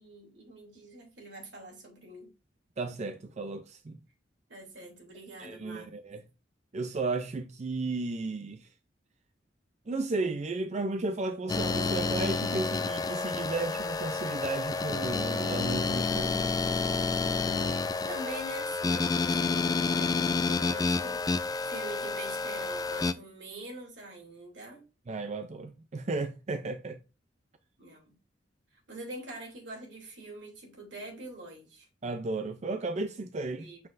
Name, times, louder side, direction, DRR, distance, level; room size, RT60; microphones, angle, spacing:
voice 1, 0.0-2.3 4.5-5.9 18.1-24.8 27.8-28.2 28.7-31.9 33.5-33.8, right 2 dB, 75° right, 3.0 m, -44 dB
voice 2, 2.8-4.0 5.4-6.2 6.7-8.7 9.9-16.6 25.1-27.0 32.0-33.7, right 3 dB, 40° right, 0.5 m, -34 dB
sound 1, 11.5-23.1, left 4 dB, 20° left, 0.3 m, -29 dB
sound 2, 11.5-21.6, right 1 dB, 15° right, 1.3 m, -57 dB
7.4 x 5.8 x 2.6 m
head